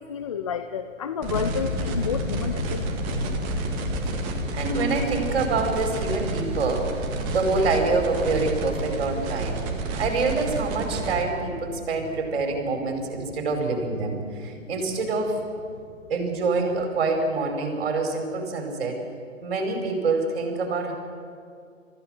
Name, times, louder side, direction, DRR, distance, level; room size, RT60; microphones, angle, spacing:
voice 1, 0.0-2.9, left 7 dB, 25° left, 10 dB, 0.5 m, -30 dB
sound 1, 1.2-11.2, right 4 dB, 20° right, 1.8 m, -31 dB
sound 2, 1.3-17.6, left 3 dB, 75° left, 1.8 m, -35 dB
voice 2, 4.5-6.9 7.3-9.6 10.0-15.4 16.1-19.0 19.4-20.9, right 3 dB, 45° right, 4 dB, 4.7 m, -26 dB
29.0 x 15.0 x 6.4 m, 2.3 s
figure-of-eight pair, 130°, 40 cm